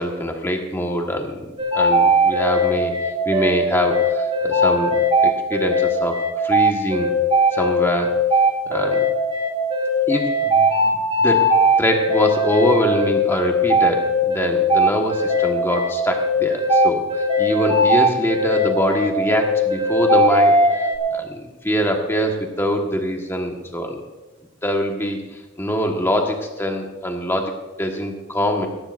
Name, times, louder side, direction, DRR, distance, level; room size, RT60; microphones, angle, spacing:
voice 1, 0.0-2.9 3.2-7.1 7.5-8.2 8.7-9.1 10.1-11.5 11.8-17.0 17.4-20.6 21.1-24.0 24.6-28.7, equal, 10° left, 2 dB, 1.4 m, -24 dB
sound 1, 1.6-21.0, equal, 30° right, 1.8 m, -18 dB
18.0 x 14.0 x 2.6 m, 1.2 s
head